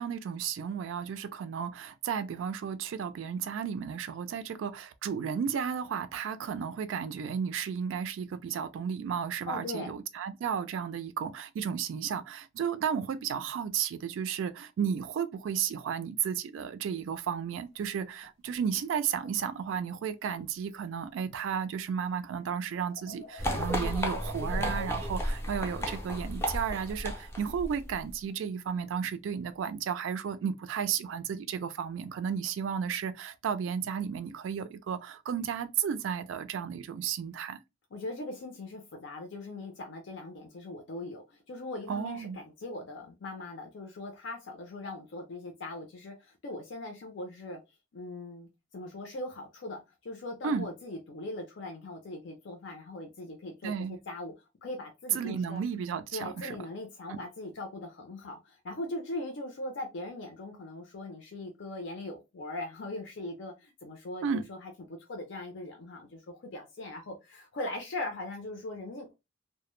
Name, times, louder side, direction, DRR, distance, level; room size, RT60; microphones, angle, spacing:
voice 1, 0.0-37.6 41.9-42.4 50.4-50.7 53.6-54.0 55.1-56.6 57.1-57.2 64.2-64.4, right 7 dB, 75° right, 0.3 m, -33 dB
voice 2, 9.5-9.9 37.9-47.6 47.9-54.3 54.6-55.6 56.1-69.1, left 2 dB, 65° left, 0.5 m, -40 dB
sound 1, 17.6-18.7 19.2-19.9 20.4-20.6 20.9-21.2 21.7-21.8 22.2-25.6 25.9-26.0 28.2-28.3 28.7-28.9 29.3-29.6, left 1 dB, 85° left, 0.9 m, -49 dB
sound 2, 23.4-28.1, equal, 15° left, 0.4 m, -33 dB
2.1 x 2.0 x 3.0 m
head